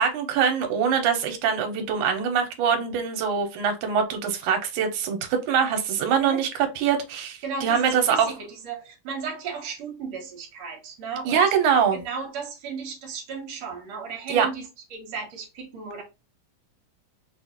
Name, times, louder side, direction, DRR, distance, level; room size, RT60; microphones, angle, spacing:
voice 1, 0.0-8.3 11.3-12.0 14.3-14.5, right 7 dB, 80° right, 2.2 m, -23 dB
voice 2, 7.4-11.5 11.9-16.0, right 5 dB, 65° right, 2.1 m, -35 dB
6.1 x 2.4 x 2.8 m
omnidirectional pair, 3.6 m